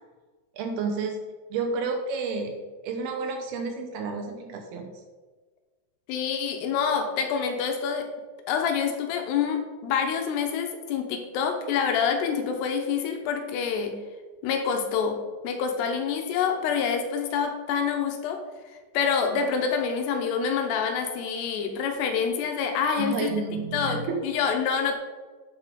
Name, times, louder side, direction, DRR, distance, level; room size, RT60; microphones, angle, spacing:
voice 1, 0.6-1.2 1.5-2.6 2.8-4.9 22.9-24.2, right 4 dB, 75° right, 4 dB, 2.4 m, -30 dB
voice 2, 6.1-8.1 8.5-14.0 14.4-18.4 18.7-23.3 23.7-24.9, left 6 dB, 80° left, 4 dB, 2.9 m, -27 dB
9.2 x 5.3 x 5.0 m, 1.4 s
omnidirectional pair, 5.0 m